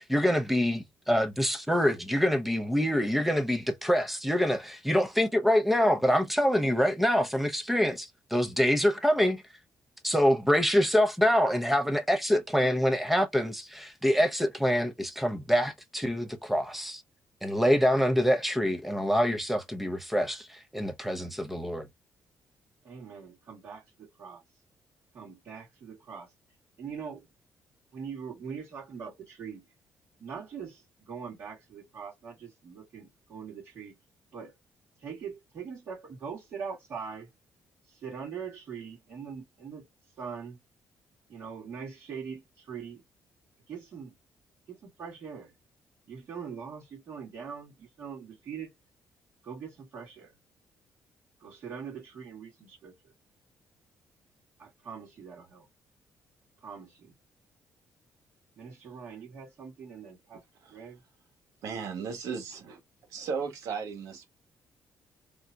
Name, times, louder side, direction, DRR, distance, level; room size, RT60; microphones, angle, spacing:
voice 1, 0.0-9.4 10.0-17.0 17.4-21.9, equal, 5° right, 0.7 m, -25 dB
voice 2, 22.8-24.4 25.1-26.3 26.8-27.3 27.9-29.6 30.2-34.0 34.3-34.5 35.0-37.3 37.8-40.6 41.3-43.0 43.7-44.1 44.7-45.5 46.1-48.7 49.4-50.3 51.4-53.1 54.6-55.7 56.6-57.1 58.6-60.4 60.7-60.9, right 6 dB, 50° right, 2.1 m, -42 dB
voice 3, 61.6-62.8 63.1-64.3, right 5 dB, 85° right, 1.3 m, -35 dB
3.6 x 2.8 x 2.3 m
cardioid pair, 140°, 6 cm